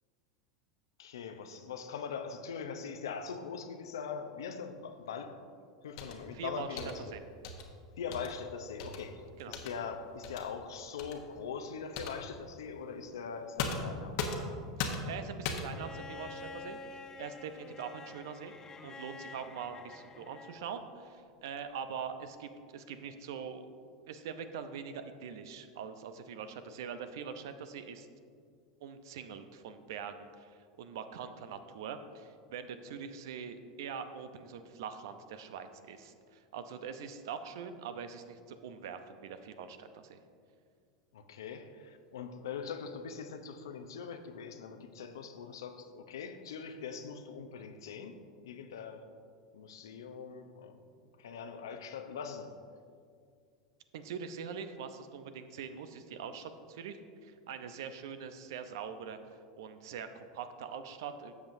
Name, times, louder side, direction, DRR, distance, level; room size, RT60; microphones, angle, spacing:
voice 1, 1.0-5.5 5.8-7.1 8.0-14.1 41.1-48.2 48.4-49.1 49.5-50.8 51.2-52.5, left 6 dB, 75° left, 7 dB, 0.7 m, -42 dB
sound 1, 6.0-6.3 6.8-7.0 7.4-7.7 8.1-8.3 8.8-9.0 9.5-9.7 10.2-10.4 11.0-11.1 11.9-12.2 13.6-14.5 14.8-15.1 15.4-15.8, left 4 dB, 60° left, 1.1 m, -36 dB
voice 2, 6.3-7.2 9.4-9.6 14.8-16.8 17.2-18.5 18.8-23.7 24.1-28.1 28.8-40.2 53.9-59.2 59.6-61.3, right 7 dB, 70° right, 9 dB, 0.6 m, -43 dB
Bowed string instrument, 15.7-20.8 22.2-22.3, left 4 dB, 25° left, 0.6 m, -48 dB
12.5 x 7.2 x 2.7 m, 2.2 s
hypercardioid pair, 85°, 2 cm